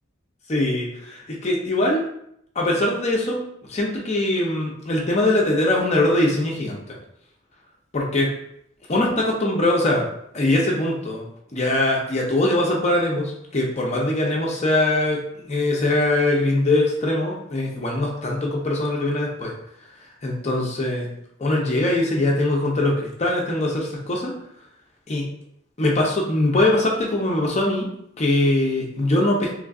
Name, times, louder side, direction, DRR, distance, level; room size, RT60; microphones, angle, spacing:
voice 1, 0.5-2.0 2.6-3.4 3.7-7.0 7.9-8.3 8.9-10.1 10.3-11.2 11.5-19.5 20.2-21.1 21.4-24.3 25.1-25.3 25.8-27.9 28.2-29.5, left 1 dB, 30° left, -2 dB, 0.6 m, -22 dB
3.2 x 2.5 x 3.6 m, 0.73 s
head